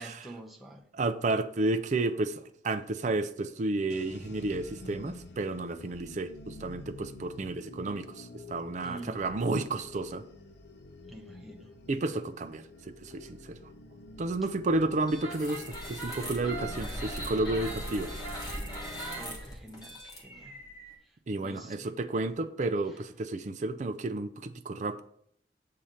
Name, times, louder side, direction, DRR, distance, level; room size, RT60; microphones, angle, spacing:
voice 1, 0.0-0.9 8.8-9.2 11.1-11.7 19.2-20.6 21.0-21.1 21.4-22.0, right 1 dB, ahead, -1 dB, 0.7 m, -47 dB
voice 2, 0.9-10.2 11.9-13.6 14.2-18.1 21.3-25.0, right 2 dB, 40° right, 9 dB, 0.4 m, -31 dB
sound 1, 3.9-19.4, left 2 dB, 70° left, 0.6 m, -47 dB
sound 2, 15.0-20.9, right 1 dB, 20° left, 1.4 m, -39 dB
7.4 x 2.8 x 5.0 m, 0.66 s
head